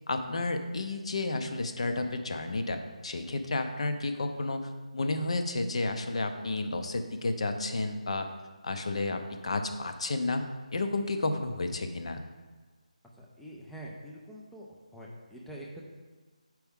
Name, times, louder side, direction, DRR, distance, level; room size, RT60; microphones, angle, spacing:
voice 1, 0.1-8.3 8.6-10.5 10.7-12.2, left 2 dB, 50° left, 7 dB, 0.6 m, -31 dB
voice 2, 13.2-14.7 14.9-15.8, right 1 dB, ahead, -4 dB, 0.3 m, -45 dB
7.1 x 4.5 x 3.5 m, 1.3 s
figure-of-eight pair, 170°, 4 cm